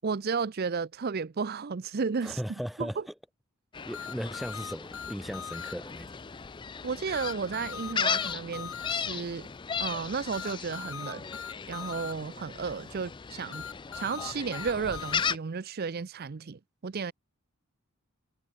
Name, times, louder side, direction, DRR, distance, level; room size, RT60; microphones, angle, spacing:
voice 1, 0.0-2.4 2.8-3.0 6.8-9.5 9.8-11.3 11.7-13.7 13.9-17.1, right 5 dB, 45° right, 0.5 m, -33 dB
voice 2, 2.2-3.0 3.9-6.1, equal, ahead, 0.8 m, -37 dB
Gull seagull, 3.7-15.4, left 6 dB, 20° left, 0.4 m, -36 dB
sound 1, 3.9-5.7 7.1-8.9 10.3-12.1 13.5-15.3, left 7 dB, 65° left, 1.0 m, -40 dB
head